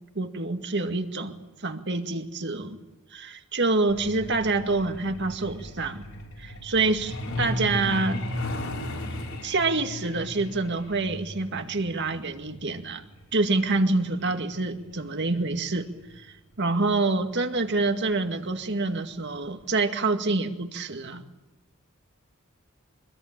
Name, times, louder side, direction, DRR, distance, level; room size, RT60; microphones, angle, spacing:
voice 1, 0.2-1.3 1.6-2.8 3.1-6.0 6.4-8.2 9.4-13.0 13.3-15.9 16.2-21.2, right 3 dB, 55° right, 6 dB, 2.0 m, -27 dB
Truck, 3.9-16.2 17.4-17.6 18.0-18.2 18.5-18.8 19.1-19.2 19.7-19.8, left 1 dB, 75° left, 6.8 m, -36 dB
24.5 x 22.5 x 8.8 m, 1.1 s
head